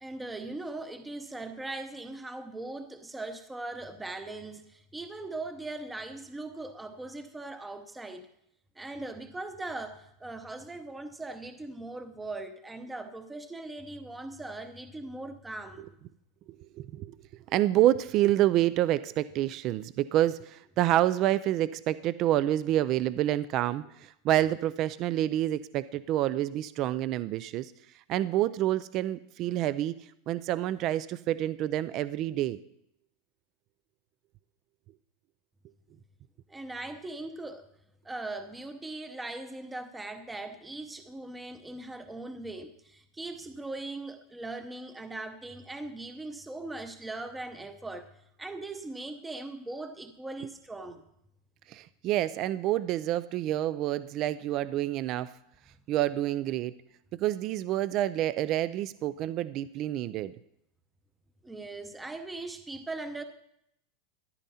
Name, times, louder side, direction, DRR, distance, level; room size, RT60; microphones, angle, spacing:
voice 1, 0.0-8.3 8.8-15.9 36.5-37.6 38.0-48.1 48.4-51.0 61.4-63.2, right 2 dB, 10° right, 8 dB, 0.7 m, -40 dB
voice 2, 16.8-17.2 17.5-27.7 28.1-30.0 30.3-32.6 51.7-55.3 55.9-56.7 57.1-60.3, right 13 dB, 40° right, 16 dB, 0.4 m, -28 dB
14.0 x 11.0 x 4.2 m, 0.76 s
supercardioid pair, 160°, 0 cm